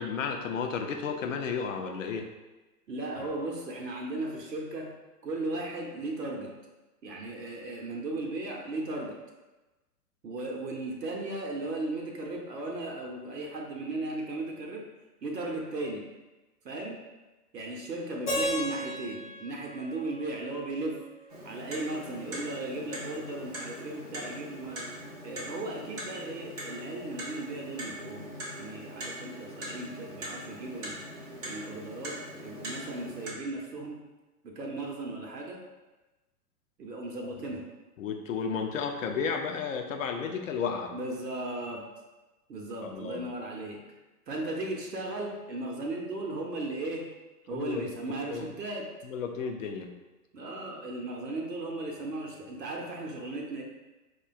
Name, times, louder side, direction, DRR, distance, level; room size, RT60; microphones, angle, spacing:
voice 1, 0.0-2.3 37.2-37.3 38.0-40.9 42.8-43.3 47.5-47.8 48.3-48.5 49.0-49.9, left 6 dB, 55° left, 4 dB, 0.5 m, -33 dB
voice 2, 2.9-4.9 5.2-6.5 7.0-9.2 10.2-14.9 15.2-16.1 16.6-17.0 17.5-21.0 21.4-24.9 25.2-31.0 31.4-34.0 34.4-35.6 36.8-37.7 40.9-41.9 42.5-43.8 44.3-47.1 47.5-48.9 50.3-53.6, right 2 dB, 80° right, 0 dB, 0.7 m, -36 dB
Keyboard (musical), 18.3-21.2, left 1 dB, 15° left, 0.9 m, -35 dB
Clock, 21.3-33.3, right 1 dB, 25° right, 0.4 m, -41 dB
4.6 x 2.1 x 2.4 m, 1.1 s
figure-of-eight pair, 115°, 48 cm